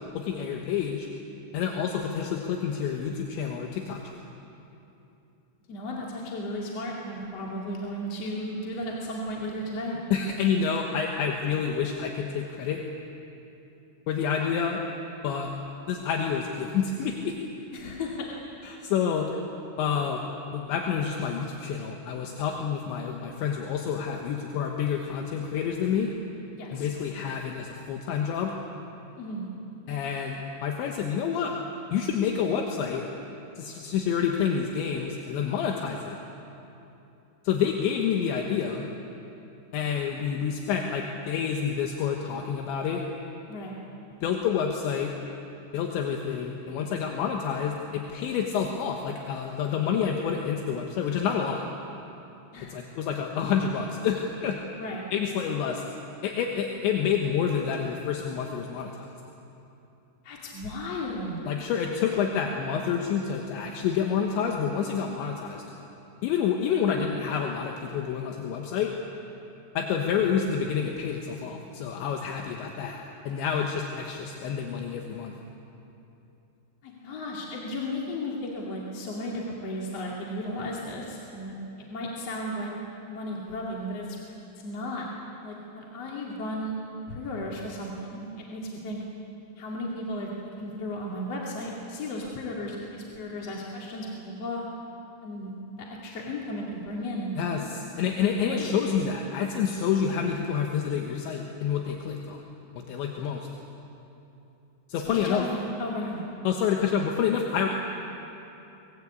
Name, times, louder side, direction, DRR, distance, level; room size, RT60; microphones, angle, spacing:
voice 1, 0.1-1.1 1.5-4.2 10.1-12.8 14.1-14.8 15.2-15.5 15.9-17.4 17.7-17.8 18.6-19.4 19.8-20.2 20.5-26.1 26.7-28.5 29.9-31.5 31.9-33.1 33.6-36.2 37.4-38.9 39.7-43.0 44.2-45.1 45.7-51.6 52.7-54.6 55.1-55.8 56.2-59.1 61.5-65.6 66.2-68.9 69.7-75.3 97.4-102.4 102.8-103.5 104.9-105.5 106.4-107.7, left 7 dB, 75° left, 1 dB, 3.5 m, -28 dB
voice 2, 5.7-10.0 17.7-18.3 26.5-26.9 29.2-29.5 43.5-43.8 52.5-52.7 54.8-55.0 60.2-61.4 76.8-81.5 81.9-82.7 83.1-84.2 84.6-85.1 85.4-86.7 87.1-89.0 89.6-90.3 90.6-94.6 95.2-95.5 95.8-97.4 98.0-98.7 105.0-106.2, left 1 dB, 40° left, -3 dB, 2.7 m, -34 dB
24.5 x 21.5 x 8.4 m, 2.9 s
omnidirectional pair, 5.4 m